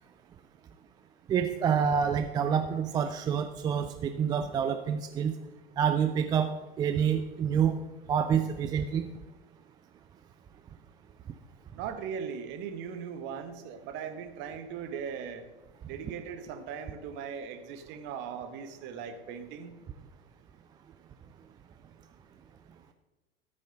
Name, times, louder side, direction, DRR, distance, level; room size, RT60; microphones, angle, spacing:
voice 1, 1.3-5.3 5.8-6.5 6.8-7.8 8.1-9.1, right 7 dB, 15° right, 8 dB, 0.4 m, -27 dB
voice 2, 11.7-15.4 15.8-19.7, right 7 dB, 35° right, 9 dB, 1.3 m, -39 dB
13.5 x 9.0 x 3.8 m, 1.1 s
figure-of-eight pair, 90°, 30 cm